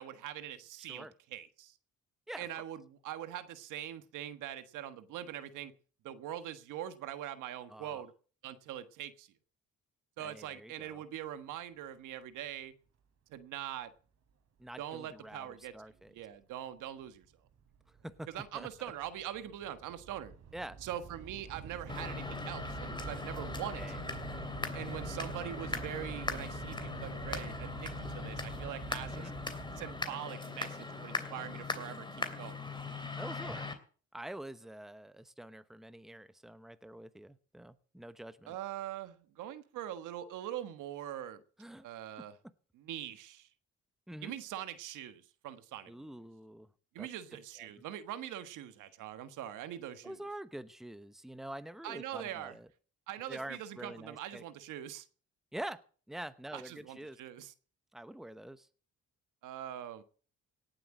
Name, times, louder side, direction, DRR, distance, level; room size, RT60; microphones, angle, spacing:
voice 1, 0.0-1.7 2.4-5.7 6.0-8.1 8.4-9.3 10.2-12.7 13.3-13.9 14.8-15.7 16.1-17.3 18.3-20.3 20.8-23.8 24.7-29.3 29.8-32.6 38.5-41.4 41.8-42.3 42.7-43.5 44.2-46.1 46.9-50.2 51.8-52.6 53.1-55.1 56.5-57.5 59.4-60.0, right 11 dB, 90° right, 11 dB, 1.5 m, -43 dB
voice 2, 0.8-1.1 2.3-2.6 7.7-8.0 10.2-11.0 14.6-15.5 15.7-16.1 18.0-18.3 18.5-18.9 20.5-20.8 23.8-24.0 29.1-29.4 33.1-33.7 34.1-38.6 41.6-41.8 44.1-44.3 45.9-46.7 47.0-47.1 47.6-47.7 50.0-52.7 53.3-54.4 55.5-55.8 56.1-57.2 57.9-58.7, right 1 dB, ahead, 13 dB, 1.0 m, -46 dB
Train / Subway metro underground, 16.1-16.2 17.0-17.2 17.5-30.1, right 6 dB, 60° right, 3.2 m, -46 dB
sound 1, 21.9-33.7, left 3 dB, 15° left, 2.8 m, -40 dB
17.5 x 7.8 x 7.6 m, 0.42 s
cardioid pair, 90°, 30 cm